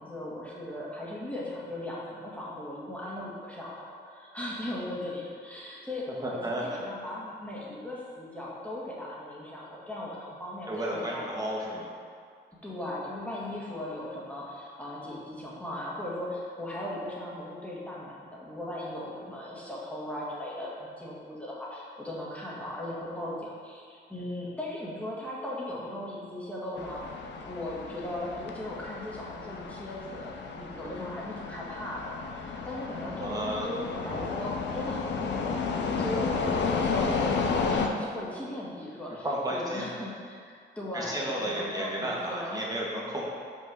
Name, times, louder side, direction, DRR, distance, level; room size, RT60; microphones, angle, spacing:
voice 1, 0.0-11.4 12.6-35.6 36.0-42.7, left 1 dB, 5° left, -6 dB, 1.7 m, -38 dB
voice 2, 6.2-6.6 10.7-11.9 33.1-33.7 39.2-39.9 40.9-43.2, right 1 dB, 20° right, -4 dB, 1.6 m, -32 dB
sound 1, 26.8-37.9, left 4 dB, 70° left, 0.7 m, -32 dB
6.0 x 4.5 x 6.3 m, 2.1 s
cardioid pair, 115°, 19 cm